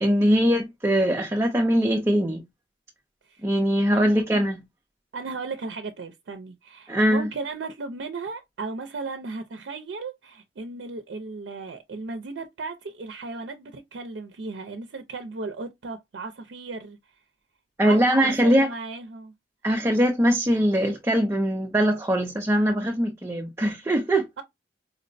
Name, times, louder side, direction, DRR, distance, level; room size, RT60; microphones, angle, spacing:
voice 1, 0.0-2.4 3.4-4.6 6.9-7.3 17.8-18.7 19.6-24.3, equal, 15° right, 0.4 m, -21 dB
voice 2, 5.1-17.0 17.8-19.3, right 3 dB, 75° right, 0.5 m, -36 dB
4.4 x 2.0 x 2.5 m
head